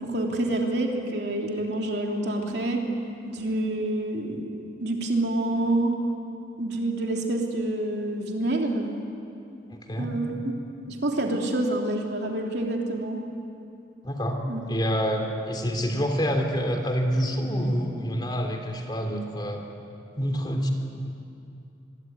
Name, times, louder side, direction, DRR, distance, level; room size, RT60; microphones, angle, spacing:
voice 1, 0.0-2.8 3.3-5.9 6.6-8.9 10.0-10.3 10.9-13.2 14.5-14.6, right 1 dB, 70° right, 1 dB, 3.2 m, -27 dB
voice 2, 9.7-10.1 14.0-14.4 14.7-19.6 20.2-20.7, equal, 25° left, 4 dB, 3.0 m, -27 dB
25.0 x 22.5 x 9.6 m, 2.6 s
head